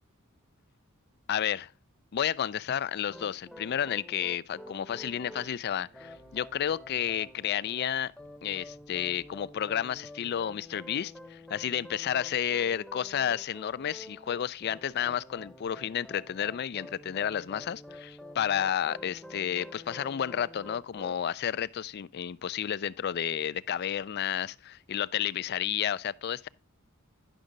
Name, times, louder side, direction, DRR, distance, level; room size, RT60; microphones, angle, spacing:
voice 1, 1.3-1.7 2.1-8.1 8.4-26.5, left 9 dB, 50° left, 0.4 m, -31 dB
sound 1, 3.1-5.5 5.9-21.2, left 1 dB, 5° left, 0.8 m, -48 dB
Singing, 5.2-10.0, right 1 dB, 70° right, 2.1 m, -63 dB
10.0 x 6.3 x 3.8 m
head